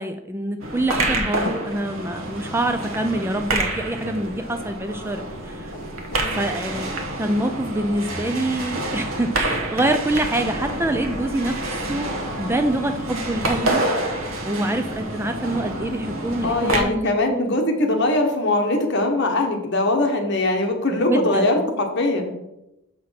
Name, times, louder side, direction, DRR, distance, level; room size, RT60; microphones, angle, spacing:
voice 1, 0.0-5.7 6.3-6.9 7.2-12.1 12.4-13.9 14.4-17.5 20.9-21.5, right 1 dB, 10° right, 7 dB, 0.4 m, -25 dB
sound 1, 0.6-16.8, right 1 dB, 75° right, 1.2 m, -28 dB
voice 2, 14.5-14.8 16.4-22.3, left 2 dB, 55° left, 3 dB, 1.2 m, -22 dB
6.9 x 4.8 x 5.8 m, 0.90 s
head